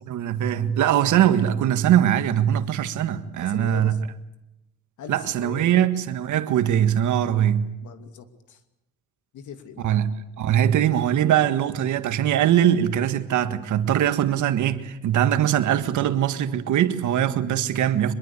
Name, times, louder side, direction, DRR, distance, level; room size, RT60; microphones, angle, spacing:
voice 1, 0.1-3.9 5.1-7.7 9.8-10.1 10.4-18.1, right 10 dB, 80° right, 1.7 m, -21 dB
voice 2, 3.4-4.0 5.0-5.8 7.8-8.6 9.3-9.9, left 8 dB, 75° left, 2.7 m, -41 dB
25.0 x 22.0 x 8.4 m
cardioid pair, 90°, 30 cm